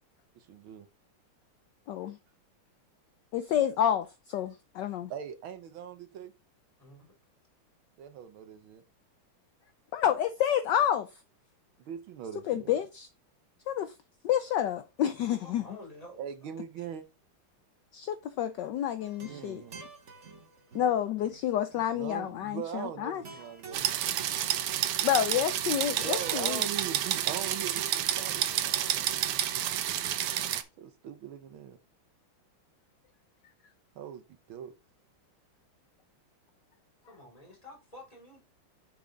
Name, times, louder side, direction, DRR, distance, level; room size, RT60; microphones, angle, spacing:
voice 1, 0.4-0.9 5.1-6.3 8.0-8.8 11.8-12.8 16.2-17.0 19.2-19.8 21.9-24.4 26.0-29.4 30.8-31.8 34.0-34.7, right 8 dB, 70° right, 1.6 m, -41 dB
voice 2, 1.9-2.2 3.3-5.1 9.9-11.1 12.5-13.1 13.7-13.9 14.2-15.6 17.9-19.6 20.7-23.2 25.0-26.6, left 10 dB, 70° left, 1.1 m, -29 dB
voice 3, 15.4-16.5 37.0-38.4, left 1 dB, 15° left, 3.1 m, -50 dB
sound 1, 19.0-29.1, right 4 dB, 40° right, 1.4 m, -49 dB
sound 2, 23.7-30.6, right 11 dB, 90° right, 1.7 m, -30 dB
7.0 x 6.2 x 3.9 m
omnidirectional pair, 2.4 m